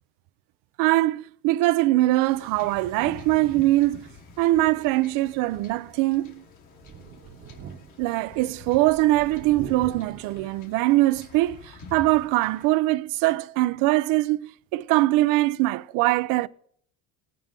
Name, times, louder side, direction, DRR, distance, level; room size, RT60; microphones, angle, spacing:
voice 1, 0.8-4.1 4.4-6.4 8.0-16.5, right 18 dB, 80° right, 0.6 m, -22 dB
Wind / Ocean / Boat Water vehicle, 2.3-12.6, left 3 dB, 65° left, 2.5 m, -47 dB
Thunder, 6.8-11.8 12.3-12.4 13.7-13.8, right 7 dB, 40° right, 1.1 m, -44 dB
20.0 x 9.0 x 3.8 m
cardioid pair, 130°, 32 cm